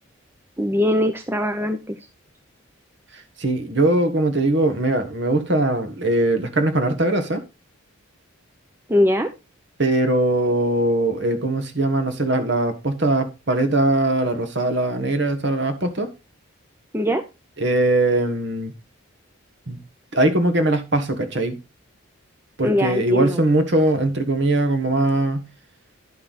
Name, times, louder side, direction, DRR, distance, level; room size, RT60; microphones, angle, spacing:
voice 1, 0.6-2.0 8.9-9.3 16.9-17.2 22.6-23.4, left 1 dB, 10° right, 0.6 m, -21 dB
voice 2, 3.1-7.4 9.8-16.1 17.6-18.7 19.7-19.8 20.1-21.6 22.6-25.5, right 2 dB, 55° right, 1.5 m, -21 dB
11.0 x 5.5 x 4.1 m
head